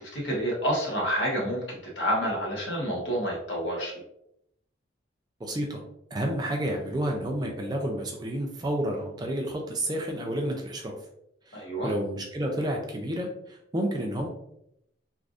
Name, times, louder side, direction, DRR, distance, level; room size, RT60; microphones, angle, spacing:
voice 1, 0.1-3.9 11.5-11.9, equal, 65° left, -3 dB, 1.1 m, -28 dB
voice 2, 5.4-5.8 6.1-10.9 11.5-14.3, right 1 dB, 20° right, 1 dB, 0.3 m, -30 dB
3.3 x 2.5 x 2.4 m, 0.77 s
head